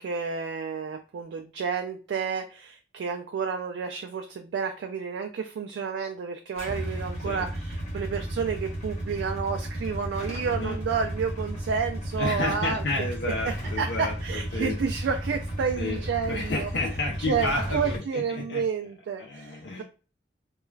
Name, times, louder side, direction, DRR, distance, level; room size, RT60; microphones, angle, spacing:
voice 1, 0.0-12.8 13.4-16.7 17.2-19.8, right 6 dB, 80° right, 4 dB, 0.3 m, -30 dB
Motorcycle / Engine starting / Idling, 6.6-18.0, right 1 dB, 40° left, 0.9 m, -34 dB
voice 2, 10.4-10.8 12.2-14.8 15.8-18.6 19.2-19.8, left 2 dB, 75° left, -2 dB, 0.5 m, -31 dB
2.3 x 2.3 x 3.1 m, 0.35 s
head